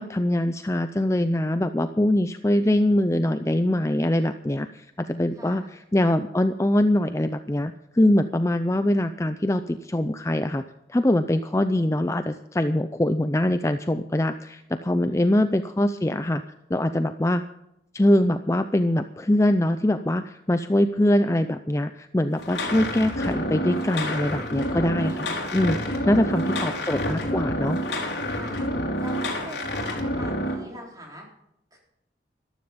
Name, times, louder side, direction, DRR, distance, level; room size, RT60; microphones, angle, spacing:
voice 1, 0.0-5.6 5.9-10.6 10.9-16.4 16.7-17.4 17.9-27.8, left 1 dB, 15° left, 9 dB, 0.5 m, -23 dB
voice 2, 5.3-5.7 15.1-15.4 28.3-28.7 29.0-31.3 31.7-31.8, equal, 20° right, -1 dB, 4.0 m, -43 dB
sound 1, 22.4-30.6, equal, 75° left, 3.7 m, -28 dB
14.0 x 13.0 x 5.2 m, 0.83 s
head